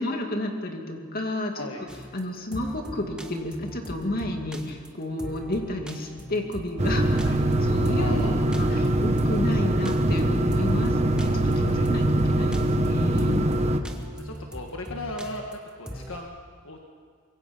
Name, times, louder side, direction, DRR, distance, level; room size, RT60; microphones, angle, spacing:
voice 1, 0.0-1.7 2.1-7.2 7.6-13.5, left 1 dB, 40° left, 3 dB, 2.5 m, -31 dB
voice 2, 1.5-1.8 7.2-7.4 8.0-8.4 8.7-9.0 11.6-11.9 14.2-16.4 16.6-16.8, left 2 dB, 60° left, 1 dB, 1.7 m, -37 dB
sound 1, 1.9-16.2, equal, 5° right, 1.5 m, -40 dB
sound 2, 6.8-13.8, right 1 dB, 30° right, 1.2 m, -23 dB
25.0 x 22.5 x 5.5 m, 2.1 s
head